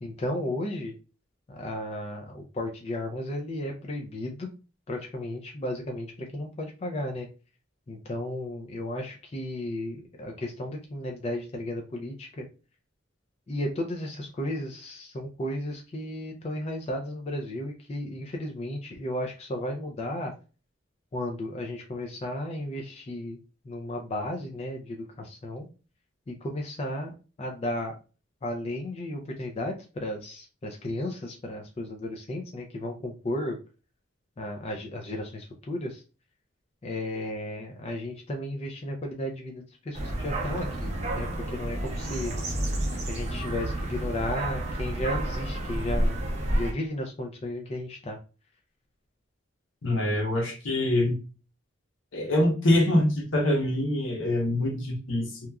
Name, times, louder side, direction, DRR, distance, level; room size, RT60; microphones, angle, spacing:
voice 1, 0.0-0.9 1.5-4.5 4.9-7.3 7.9-12.5 13.5-20.3 21.1-23.4 23.6-25.7 26.3-27.1 27.4-27.9 28.4-33.6 34.4-36.0 36.8-42.3 43.1-46.2 46.5-48.2, left 1 dB, 30° left, 2 dB, 0.4 m, -34 dB
sound 1, 39.9-46.7, right 1 dB, 35° right, 0.6 m, -30 dB
voice 2, 49.8-51.2 52.1-55.4, left 1 dB, 85° left, 2 dB, 0.9 m, -25 dB
2.9 x 2.3 x 2.2 m, 0.34 s
head